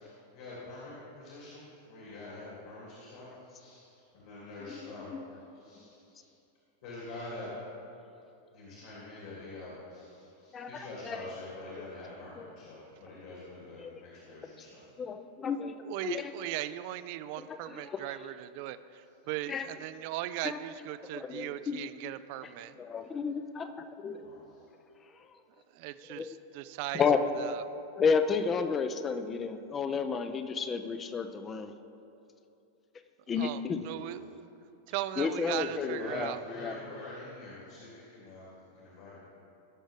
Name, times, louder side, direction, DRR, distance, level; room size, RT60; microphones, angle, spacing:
voice 1, 0.0-5.2 5.5-6.3 6.8-7.5 8.5-14.8 24.2-24.6 33.9-34.1 35.5-39.2, left 2 dB, 55° left, -6 dB, 2.6 m, -46 dB
voice 2, 10.5-11.3 12.4-12.5 13.8-13.9 15.0-16.3 17.4-18.2 19.5-19.7 20.4-20.6 21.1-21.8 22.4-22.5 22.8-24.3 26.1-26.4 26.9-27.3 28.0-31.7 33.3-33.8 35.2-36.7, left 5 dB, 20° left, 9 dB, 0.5 m, -32 dB
voice 3, 15.8-18.8 19.3-22.7 25.8-27.0 27.4-27.6 33.3-34.5 34.9-36.4, right 14 dB, 45° right, 14 dB, 0.3 m, -38 dB
16.5 x 6.3 x 3.5 m, 2.7 s
figure-of-eight pair, 90°, 0 cm